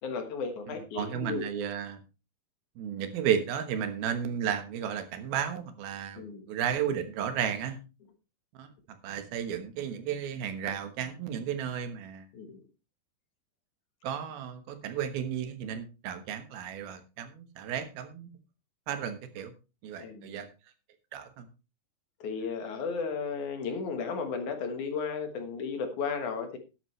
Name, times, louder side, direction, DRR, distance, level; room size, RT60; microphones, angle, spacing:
voice 1, 0.0-1.5 6.2-6.5 12.3-12.6 20.0-20.4 22.2-26.6, left 5 dB, 60° left, 6 dB, 2.7 m, -34 dB
voice 2, 1.0-2.0 2.8-7.8 8.5-8.7 9.0-12.3 14.0-18.3 18.9-19.5 19.8-20.5 21.1-21.4, right 8 dB, 90° right, 8 dB, 3.2 m, -33 dB
12.5 x 11.0 x 3.2 m, 0.30 s
omnidirectional pair, 4.2 m